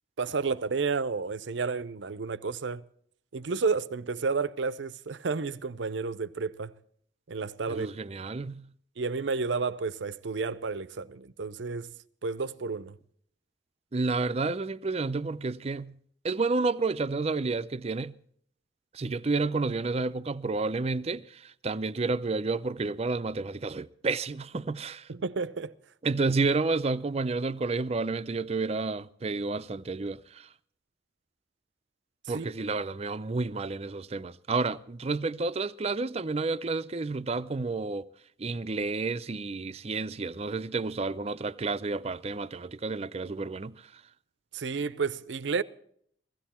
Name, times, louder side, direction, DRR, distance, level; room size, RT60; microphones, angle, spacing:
voice 1, 0.2-2.8 3.3-6.7 7.3-7.9 9.0-11.9 12.2-13.0 25.1-25.7 32.3-32.5 44.5-45.6, right 4 dB, 85° right, 0.6 m, -31 dB
voice 2, 7.7-8.7 13.9-16.0 16.2-18.2 18.9-25.1 26.0-30.5 32.3-38.1 38.4-43.8, right 3 dB, 35° right, 0.5 m, -30 dB
16.5 x 15.5 x 4.3 m
head